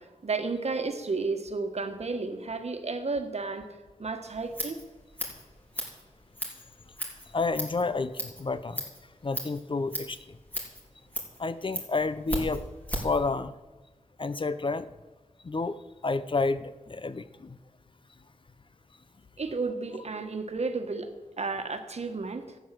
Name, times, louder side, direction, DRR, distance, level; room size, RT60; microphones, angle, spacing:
voice 1, 0.0-3.7 4.0-4.8 19.4-22.6, right 4 dB, 55° right, 7 dB, 1.5 m, -32 dB
Scissors, 4.3-13.2, equal, 15° left, 3.9 m, -37 dB
voice 2, 7.3-8.8 9.2-10.2 11.4-12.6 12.9-13.5 14.2-14.9 15.4-17.6, left 3 dB, 40° left, 13 dB, 0.6 m, -30 dB
14.0 x 9.5 x 7.7 m, 1.2 s
wide cardioid pair, 105°, 13 cm